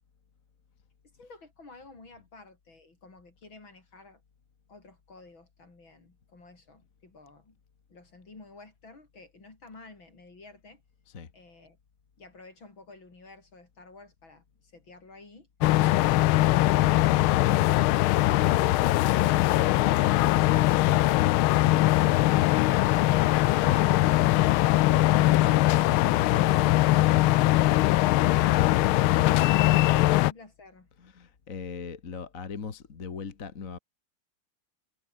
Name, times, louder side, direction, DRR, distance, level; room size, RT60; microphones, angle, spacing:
voice 1, 1.0-4.2 4.7-7.6 7.9-10.8 11.3-11.8 12.2-15.5 30.2-30.9, left 3 dB, 70° left, 6.4 m, -51 dB
sound 1, 15.6-30.3, left 17 dB, 90° left, 1.5 m, -21 dB
voice 2, 21.6-21.9 23.6-24.4 24.8-27.2 31.0-33.8, left 5 dB, 40° left, 2.0 m, -39 dB
omnidirectional pair, 2.3 m